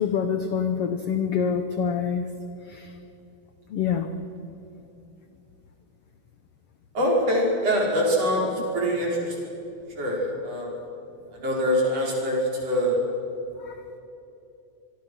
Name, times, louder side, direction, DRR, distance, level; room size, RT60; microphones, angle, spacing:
voice 1, 0.0-2.3 2.6-2.9 3.7-4.1 13.6-13.8, left 7 dB, 80° left, 7 dB, 1.3 m, -26 dB
voice 2, 6.9-9.4 10.0-10.7 11.3-13.0, equal, 45° right, -2 dB, 6.0 m, -24 dB
26.0 x 22.5 x 6.3 m, 2.9 s
omnidirectional pair, 4.1 m